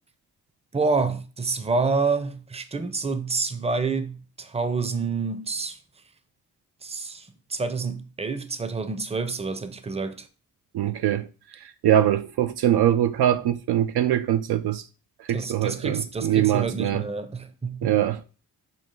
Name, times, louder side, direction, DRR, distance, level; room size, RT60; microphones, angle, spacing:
voice 1, 0.7-5.8 6.8-10.3 15.3-18.0, right 4 dB, 15° right, 0.6 m, -28 dB
voice 2, 10.7-11.3 11.8-14.8 15.3-17.0 17.8-18.2, right 11 dB, 65° right, 0.5 m, -22 dB
5.6 x 2.3 x 3.8 m
supercardioid pair, 45°, 42 cm